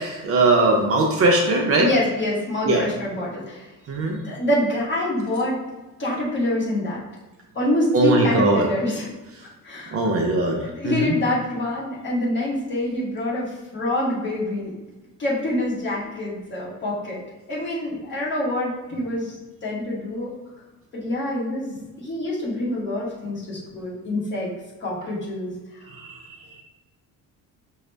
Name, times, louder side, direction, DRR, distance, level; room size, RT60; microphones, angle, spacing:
voice 1, 0.0-1.9 2.6-2.8 3.9-4.2 7.9-8.7 9.9-11.2 25.9-26.4, right 2 dB, 45° right, 1 dB, 0.5 m, -20 dB
voice 2, 1.8-3.7 4.1-5.6 6.0-7.0 7.5-9.1 9.6-10.0 10.6-14.7 15.2-17.2 17.5-19.4 19.6-20.3 20.9-24.5 24.8-25.5 25.9-26.0, left 1 dB, 35° left, -6 dB, 1.2 m, -26 dB
5.0 x 2.1 x 3.2 m, 1.1 s
cardioid pair, 175°, 33 cm